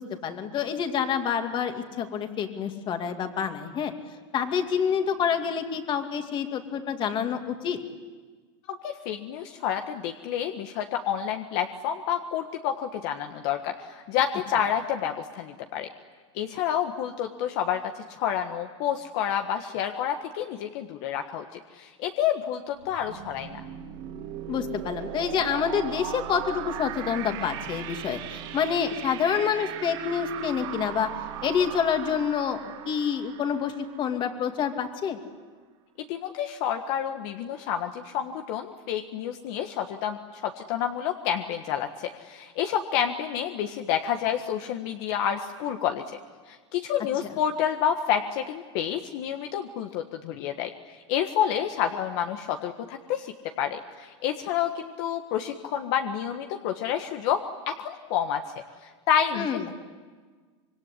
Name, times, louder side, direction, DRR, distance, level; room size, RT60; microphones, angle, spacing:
voice 1, 0.0-3.9 4.3-7.8 24.5-31.1 31.4-32.6 32.8-35.2 47.2-47.3 59.3-59.7, left 7 dB, 30° left, 6 dB, 2.5 m, -27 dB
voice 2, 8.7-15.9 16.3-23.6 36.1-46.0 46.5-50.7 51.1-58.4 58.8-59.5, left 9 dB, 55° left, 5 dB, 1.5 m, -29 dB
sound 1, 22.8-34.5, right 11 dB, 55° right, 2.9 m, -38 dB
26.0 x 22.5 x 9.9 m, 1.5 s
supercardioid pair, 135°, 16 cm